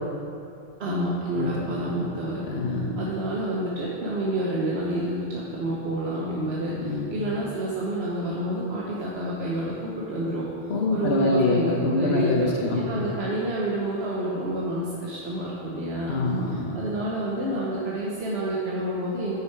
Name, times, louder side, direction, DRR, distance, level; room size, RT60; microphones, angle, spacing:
voice 1, 0.8-2.4 3.0-16.1 16.7-19.4, right 1 dB, 80° right, -5 dB, 1.2 m, -29 dB
voice 2, 1.3-1.7 1.9-2.1 2.4-3.0 5.6-5.7 6.8-7.2 10.7-13.1 16.1-16.7, left 2 dB, 85° left, -2 dB, 1.2 m, -25 dB
8.9 x 6.3 x 4.6 m, 2.6 s
omnidirectional pair, 1.0 m